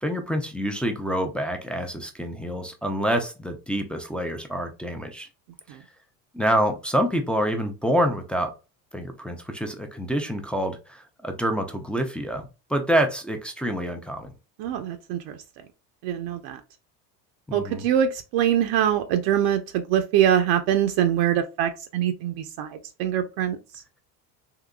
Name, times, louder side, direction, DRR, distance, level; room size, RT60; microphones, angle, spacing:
voice 1, 0.0-5.3 6.3-8.5 8.9-14.3 17.5-17.9, equal, 5° left, 0.3 m, -27 dB
voice 2, 14.6-15.4 16.0-16.6 17.5-23.6, right 10 dB, 65° right, 0.6 m, -24 dB
3.8 x 2.7 x 2.2 m
supercardioid pair, 95°, 47 cm